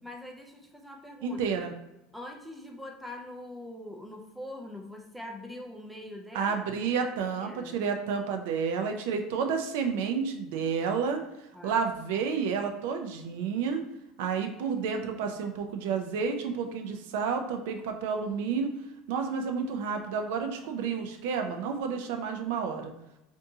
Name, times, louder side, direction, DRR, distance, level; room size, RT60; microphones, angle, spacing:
voice 1, 0.0-1.4 2.1-6.6 7.4-7.8 11.5-11.8, left 1 dB, ahead, 1 dB, 0.3 m, -43 dB
voice 2, 1.2-1.7 6.3-11.2 11.6-13.8 14.2-18.7 19.1-22.9, right 6 dB, 75° right, 5 dB, 0.4 m, -30 dB
3.5 x 2.6 x 2.7 m, 0.93 s
cardioid pair, 160°, 0 cm